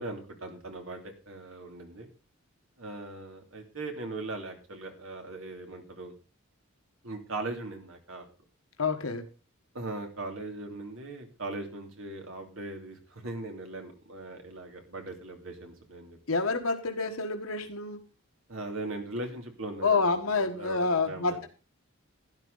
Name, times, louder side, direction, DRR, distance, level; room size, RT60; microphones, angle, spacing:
voice 1, 0.0-2.1 2.8-6.1 7.0-8.2 9.7-16.2 18.5-21.4, right 2 dB, 75° right, 4 dB, 2.8 m, -39 dB
voice 2, 8.8-9.2 16.3-18.0 19.8-21.5, left 4 dB, 90° left, 5 dB, 1.4 m, -28 dB
12.0 x 11.0 x 4.0 m, 0.34 s
head